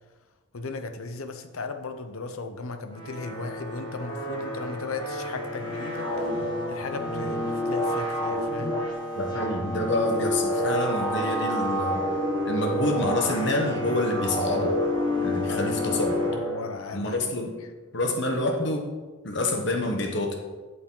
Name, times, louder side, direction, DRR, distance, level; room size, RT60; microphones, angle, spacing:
voice 1, 0.5-6.1 6.7-8.8 15.5-17.2, left 3 dB, 85° left, 8 dB, 0.8 m, -36 dB
sound 1, 2.9-17.0, equal, 20° left, 1.7 m, -29 dB
voice 2, 9.2-12.0 12.4-14.7 15.2-16.2 16.9-17.5 17.9-18.9 19.2-20.4, left 1 dB, 55° left, 2 dB, 1.2 m, -27 dB
11.5 x 6.8 x 3.9 m, 1.3 s
head